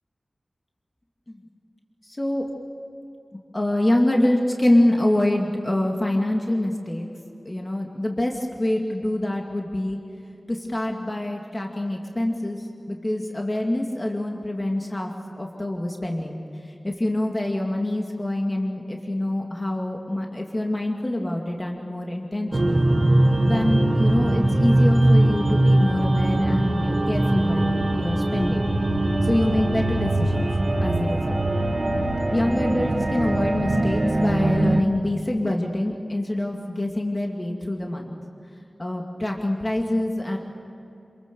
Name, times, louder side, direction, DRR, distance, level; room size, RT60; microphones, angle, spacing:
voice 1, 3.5-7.1 7.5-10.0 10.5-12.6 12.9-15.1 15.4-16.4 16.8-22.8 23.4-28.7 29.2-30.5 30.8-31.4 32.3-38.1 38.8-40.4, left 1 dB, 25° left, 1 dB, 2.3 m, -25 dB
sound 1, 22.5-34.8, right 1 dB, 40° right, 1.9 m, -21 dB
28.0 x 21.5 x 7.0 m, 2.9 s
wide cardioid pair, 70°, 0 cm